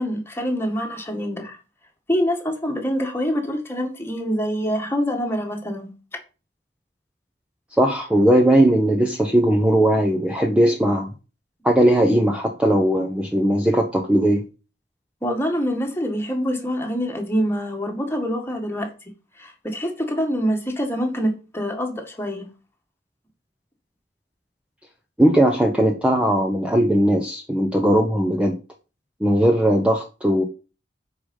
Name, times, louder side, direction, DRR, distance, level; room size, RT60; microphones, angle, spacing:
voice 1, 0.0-1.6 2.1-5.9 15.2-18.9 19.4-22.5, equal, 15° left, 1.9 m, -25 dB
voice 2, 7.8-11.1 11.6-14.4 25.2-28.6 29.2-30.4, right 1 dB, 5° right, 1.0 m, -18 dB
8.6 x 5.0 x 5.5 m
head